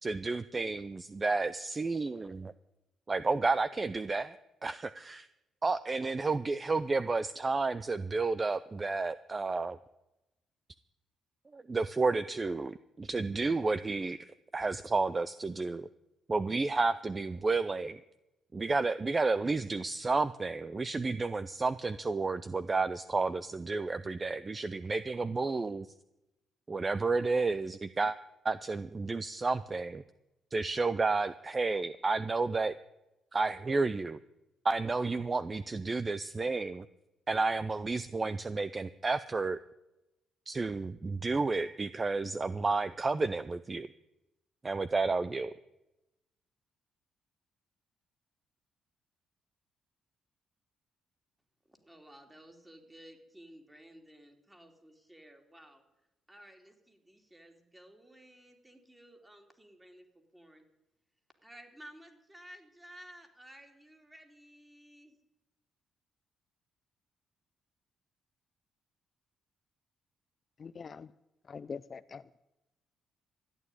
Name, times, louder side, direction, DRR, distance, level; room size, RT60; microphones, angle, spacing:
voice 1, 0.0-2.5 3.1-4.4 4.6-5.3 5.6-9.8 11.5-14.3 14.5-15.9 16.3-18.0 18.5-25.9 26.7-28.2 28.4-30.0 30.5-32.7 33.3-34.2 34.6-36.8 37.3-39.6 40.5-43.9 44.6-45.5, right 3 dB, 25° right, 14 dB, 0.5 m, -31 dB
voice 2, 51.7-55.8 56.3-60.6 61.4-65.2, equal, 10° right, 4 dB, 3.0 m, -55 dB
voice 3, 70.6-71.1 71.5-72.2, left 5 dB, 40° left, 14 dB, 0.5 m, -43 dB
14.0 x 9.5 x 9.8 m, 0.94 s
cardioid pair, 90°, 0 cm